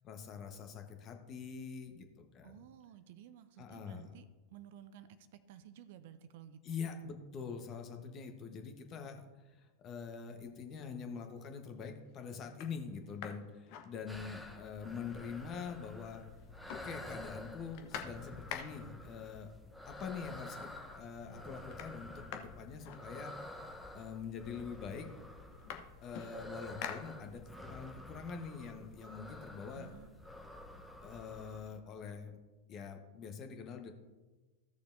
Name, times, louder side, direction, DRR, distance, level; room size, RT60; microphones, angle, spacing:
voice 1, 0.0-2.1 2.3-2.6 3.6-4.1 6.6-9.2 9.6-16.2 16.8-19.5 19.8-23.3 23.9-25.1 26.0-29.9 31.0-32.3 32.7-33.9, left 6 dB, 35° left, 5 dB, 1.2 m, -44 dB
voice 2, 2.4-4.2 4.5-5.1 5.5-6.8 29.7-30.2, right 10 dB, 55° right, 12 dB, 0.5 m, -54 dB
sound 1, 11.3-11.5 12.0-12.1 12.5-14.5 14.9-15.0 15.2-16.1 16.3-19.1 20.0-20.1 20.5-21.0 21.2-23.6 24.4-24.5 24.8-27.7 28.1-29.8, left 8 dB, 50° left, 0.8 m, -49 dB
sound 2, 14.1-31.8, left 1 dB, 5° left, 1.0 m, -50 dB
15.0 x 6.7 x 2.7 m, 1.2 s
figure-of-eight pair, 90°, 0 cm